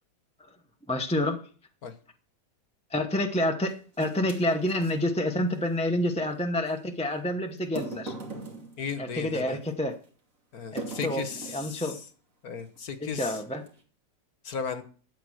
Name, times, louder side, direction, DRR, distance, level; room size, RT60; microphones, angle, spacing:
voice 1, 0.9-1.5 2.9-8.2 9.0-10.0 10.7-12.0 13.0-13.6, left 1 dB, 5° left, 4 dB, 0.8 m, -28 dB
sound 1, 3.7-5.0 6.7-6.8 7.6-9.7 10.8-11.7 12.6-12.8 13.3-13.8, right 3 dB, 50° right, 3.0 m, -40 dB
voice 2, 8.8-9.6 10.5-11.9 12.4-13.4 14.4-14.8, left 6 dB, 60° left, 9 dB, 1.6 m, -35 dB
13.0 x 8.6 x 6.4 m, 0.42 s
omnidirectional pair, 1.9 m